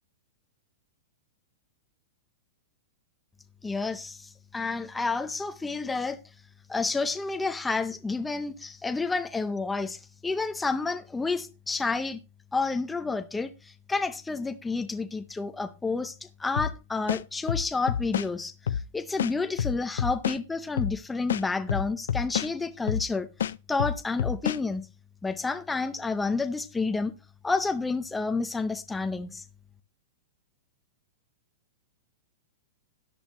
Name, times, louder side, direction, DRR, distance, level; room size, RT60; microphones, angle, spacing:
voice 1, 3.6-6.2 6.7-12.2 12.5-24.9 25.2-27.1 27.4-29.4, left 3 dB, 5° left, 0.6 m, -30 dB
sound 1, 16.6-16.7 17.1-18.3 18.7-18.8 19.2-20.4 20.8-20.9 21.3-22.5 22.9-23.1 23.4-24.6, left 9 dB, 90° left, 0.5 m, -28 dB
13.5 x 10.5 x 3.0 m
supercardioid pair, 170°, 0 cm